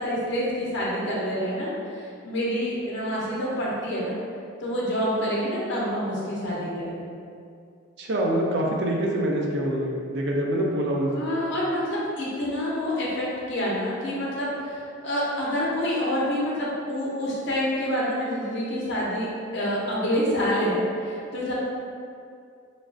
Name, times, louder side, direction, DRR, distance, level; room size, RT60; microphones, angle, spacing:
voice 1, 0.0-4.1 4.6-7.0 11.1-19.3 19.5-21.5, equal, 55° left, -6 dB, 0.6 m, -27 dB
voice 2, 8.0-11.3, right 1 dB, 55° right, -1 dB, 0.4 m, -25 dB
3.1 x 2.3 x 2.5 m, 2.4 s
head